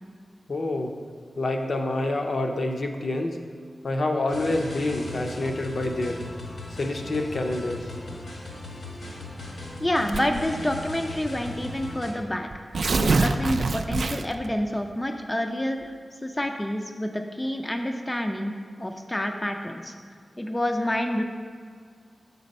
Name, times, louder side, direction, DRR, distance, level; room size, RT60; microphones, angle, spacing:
voice 1, 0.5-0.9 1.4-3.4 3.8-6.2 6.8-7.8, left 2 dB, 60° left, 3 dB, 0.6 m, -27 dB
sound 1, 4.3-12.1, left 2 dB, 80° left, 1.4 m, -38 dB
voice 2, 9.8-12.5 13.0-15.9 16.2-18.5 18.8-19.9 20.4-21.2, left 1 dB, 15° left, 4 dB, 0.4 m, -28 dB
Tearing, 10.1-10.5 11.4-11.5 11.8-11.9 12.5-14.5, right 3 dB, 70° right, 0.3 m, -24 dB
6.8 x 4.1 x 5.3 m, 2.1 s
wide cardioid pair, 115°, 0 cm